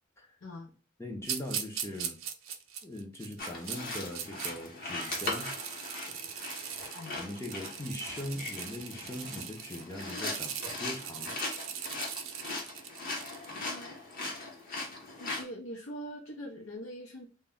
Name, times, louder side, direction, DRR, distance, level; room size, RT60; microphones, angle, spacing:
voice 1, 1.0-2.2 2.8-5.5 7.1-11.3, left 1 dB, 15° left, 1 dB, 0.5 m, -40 dB
sound 1, 1.2-4.5 4.9-13.6, right 8 dB, 85° right, 0.4 m, -40 dB
sound 2, 3.4-15.4, left 2 dB, 45° left, 0.8 m, -40 dB
voice 2, 13.6-14.0 15.2-17.3, equal, 85° left, -1 dB, 0.6 m, -43 dB
2.2 x 2.1 x 3.5 m, 0.38 s
head